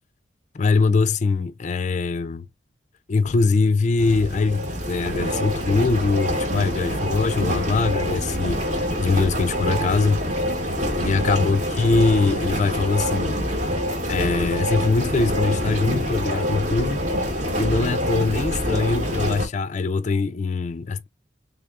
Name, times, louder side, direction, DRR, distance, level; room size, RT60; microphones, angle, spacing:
voice 1, 0.5-2.5 3.1-10.2 10.9-13.4 14.1-17.1 17.6-21.1, left 4 dB, 40° left, 0.4 m, -22 dB
sound 1, 4.0-19.5, equal, 40° right, 1.1 m, -25 dB
3.5 x 3.4 x 2.4 m
head